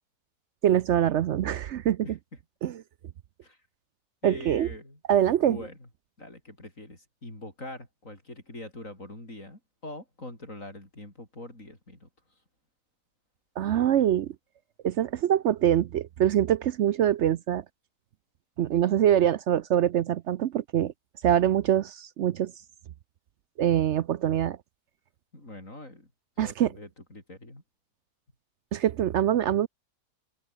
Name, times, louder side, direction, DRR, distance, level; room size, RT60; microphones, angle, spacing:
voice 1, 0.6-2.1 2.6-2.8 4.2-4.7 5.1-5.6 13.6-14.3 14.8-17.6 18.6-20.9 21.2-22.5 23.6-24.6 26.4-26.7 28.7-29.7, right 10 dB, 70° right, 0.6 m, -24 dB
voice 2, 4.2-5.0 5.4-5.9 6.2-12.1 25.3-26.1 26.4-27.6, left 1 dB, 50° left, 7.8 m, -43 dB
omnidirectional pair, 1.8 m